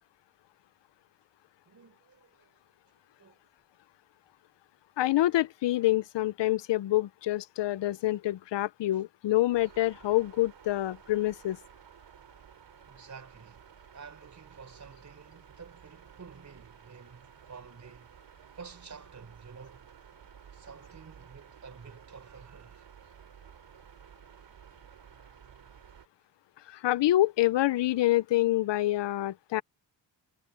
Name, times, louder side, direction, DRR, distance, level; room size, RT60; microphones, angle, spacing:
voice 1, 1.7-2.5 3.2-3.4 8.9-9.0 12.9-13.7 13.9-18.1 18.5-19.9 20.5-22.9, right 5 dB, 40° right, 4.5 m, -50 dB
voice 2, 5.0-11.6 26.7-29.6, left 15 dB, 70° left, 0.7 m, -26 dB
sound 1, 9.5-26.1, right 9 dB, 70° right, 3.9 m, -54 dB
wide cardioid pair, 125°, 44 cm